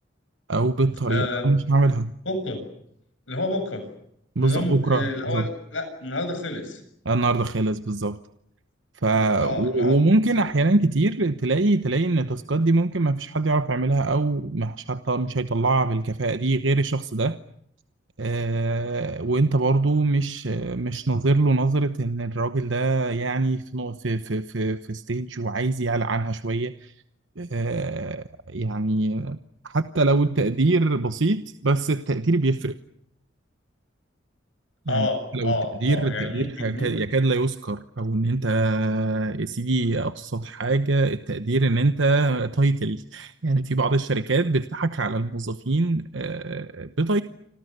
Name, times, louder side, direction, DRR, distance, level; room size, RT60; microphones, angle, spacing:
voice 1, 0.5-2.1 4.3-5.5 7.0-8.2 8.9-17.4 18.2-26.9 27.4-29.4 29.6-32.7 34.9-35.1 35.3-47.2, right 2 dB, 80° right, 10 dB, 1.0 m, -23 dB
voice 2, 1.1-1.5 2.3-2.6 3.3-3.8 4.4-6.8 9.3-10.0 10.4-10.5 34.9-36.9, left 2 dB, 85° left, 6 dB, 7.3 m, -29 dB
29.0 x 26.5 x 6.8 m, 0.74 s
head